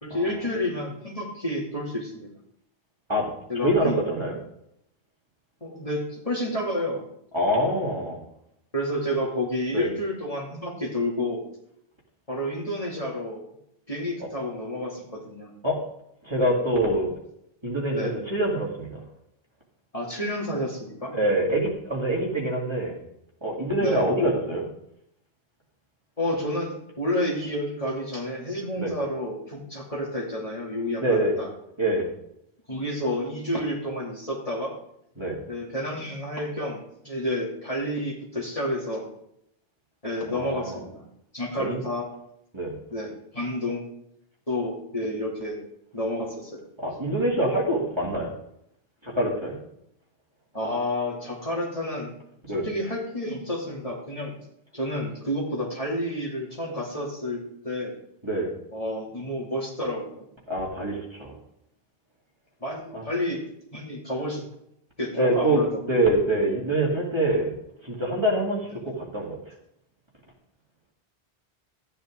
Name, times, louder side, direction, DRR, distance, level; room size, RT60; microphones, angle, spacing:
voice 1, 0.0-2.3 3.5-4.0 5.6-7.1 8.7-11.4 12.3-13.4 13.9-15.5 17.9-18.2 19.9-21.1 23.8-24.0 26.2-31.5 32.7-34.7 35.5-39.1 40.0-41.1 41.3-42.1 42.9-43.8 44.5-45.6 45.9-46.6 50.5-52.1 52.5-54.4 54.7-58.0 58.7-60.3 62.6-63.4 63.7-64.4 65.0-65.7, left 1 dB, 35° left, -3 dB, 2.9 m, -30 dB
voice 2, 3.6-4.4 7.3-8.2 9.7-9.9 15.6-15.8 16.2-17.1 17.6-18.9 21.1-23.0 23.4-24.7 28.8-28.9 31.0-31.3 31.8-32.1 35.2-35.4 40.3-40.8 41.6-41.8 42.5-42.7 46.8-48.3 49.0-49.6 52.5-52.6 58.2-58.5 60.5-61.4 62.9-63.1 65.1-65.6 65.9-67.5 67.8-69.4, right 1 dB, 25° right, -3 dB, 2.5 m, -25 dB
13.5 x 9.6 x 3.8 m, 0.76 s
omnidirectional pair, 1.1 m